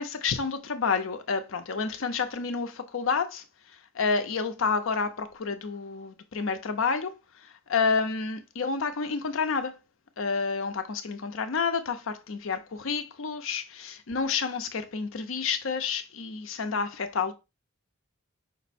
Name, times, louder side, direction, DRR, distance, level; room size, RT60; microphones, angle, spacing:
voice 1, 0.0-3.4 3.9-7.1 7.4-9.7 10.2-17.3, left 5 dB, 65° left, 0.6 m, -29 dB
5.2 x 2.1 x 4.2 m
head